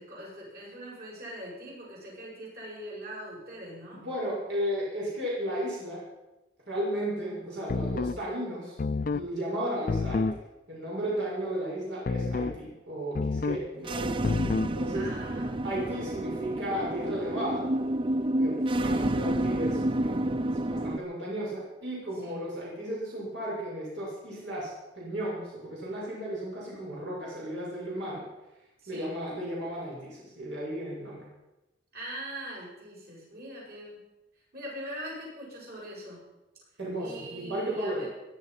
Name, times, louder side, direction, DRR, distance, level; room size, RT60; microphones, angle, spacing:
voice 1, 0.0-4.0 14.9-15.6 18.9-19.2 22.2-22.4 28.8-29.1 31.9-34.0 34.5-36.2 37.0-38.1, right 1 dB, 55° right, -4 dB, 7.8 m, -42 dB
voice 2, 3.9-6.0 6.7-8.8 9.1-10.4 10.7-15.1 15.6-17.7 18.4-28.3 28.9-31.2 36.8-38.1, equal, 80° right, -6 dB, 6.4 m, -34 dB
sound 1, 7.7-8.2 8.8-9.3 9.9-10.4 12.1-12.6 13.2-13.7 14.2-14.8, left 4 dB, 50° left, 0.4 m, -28 dB
sound 2, 13.8-21.0, right 1 dB, 30° right, 0.5 m, -29 dB
21.0 x 11.5 x 5.9 m, 1.0 s
head